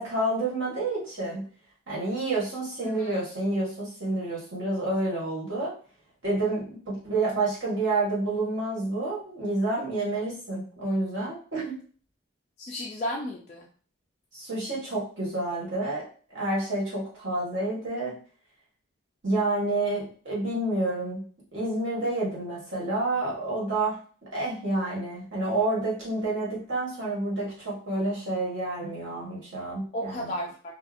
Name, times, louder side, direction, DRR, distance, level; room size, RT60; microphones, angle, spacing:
voice 1, 0.0-1.5 1.9-5.7 6.2-11.8 14.3-16.0 16.3-18.2 19.2-21.2 21.5-24.0 24.3-30.4, right 2 dB, 65° right, -7 dB, 1.4 m, -29 dB
voice 2, 2.8-3.3 12.6-13.7 29.9-30.7, left 1 dB, 35° left, -2 dB, 0.3 m, -34 dB
2.6 x 2.5 x 2.4 m, 0.43 s
head